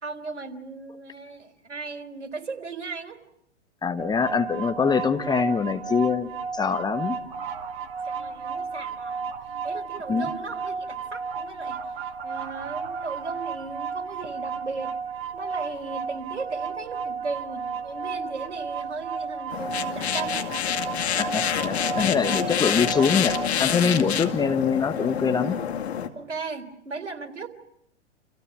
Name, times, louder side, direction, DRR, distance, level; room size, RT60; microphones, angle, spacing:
voice 1, 0.0-3.2 8.0-9.3 9.6-11.8 12.2-14.9 15.3-20.5 24.4-24.5 26.1-27.5, right 4 dB, 75° right, 5 dB, 3.9 m, -36 dB
voice 2, 3.8-7.2 10.1-10.3 21.2-25.6, left 6 dB, 10° left, 8 dB, 1.1 m, -24 dB
sound 1, 4.0-23.5, right 5 dB, 45° right, 2.2 m, -33 dB
sound 2, 19.5-26.1, left 9 dB, 60° left, 2.3 m, -27 dB
29.5 x 28.0 x 6.1 m, 0.73 s
figure-of-eight pair, 110°, 36 cm